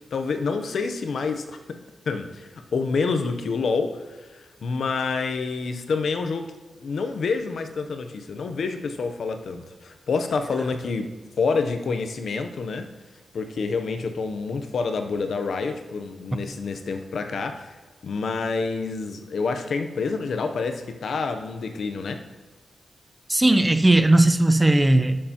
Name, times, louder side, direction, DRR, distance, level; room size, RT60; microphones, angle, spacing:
voice 1, 0.0-1.8 2.1-6.5 6.8-11.1 11.4-12.9 13.3-17.8 18.0-22.2, left 4 dB, 70° left, 7 dB, 0.7 m, -28 dB
voice 2, 23.3-25.3, right 2 dB, 15° right, 8 dB, 0.5 m, -17 dB
11.0 x 6.6 x 2.9 m, 1.3 s
wide cardioid pair, 110°, 0 cm